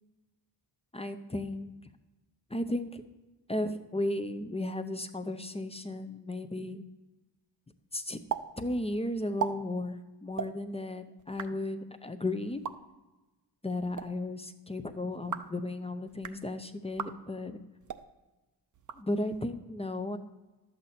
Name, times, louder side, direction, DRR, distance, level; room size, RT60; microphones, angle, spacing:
voice 1, 0.9-1.7 2.5-3.0 3.5-6.8 7.9-8.2 8.6-12.6 13.6-17.6 18.9-20.2, left 1 dB, 15° left, 8 dB, 0.5 m, -34 dB
sound 1, 8.3-8.4 8.7-8.8 9.2-9.5 10.3-10.5 11.2-11.5 12.5-12.7 13.7-14.1 15.1-15.5 16.1-16.4 16.9-17.1 17.8-18.0 18.7-19.4, right 8 dB, 45° right, 0.5 m, -37 dB
12.0 x 8.0 x 4.2 m, 1.1 s
wide cardioid pair, 165°, 42 cm